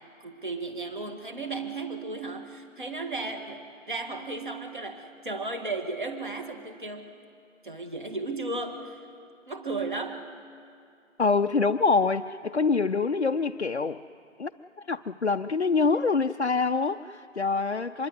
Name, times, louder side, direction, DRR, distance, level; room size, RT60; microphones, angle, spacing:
voice 1, 0.2-7.1 7.6-9.0 9.5-10.2, right 3 dB, 40° right, 6 dB, 1.9 m, -35 dB
voice 2, 11.2-14.0 14.4-14.5 14.9-18.1, left 4 dB, 55° left, 4 dB, 0.6 m, -25 dB
24.5 x 22.0 x 9.4 m, 2.4 s
figure-of-eight pair, 170°, 39 cm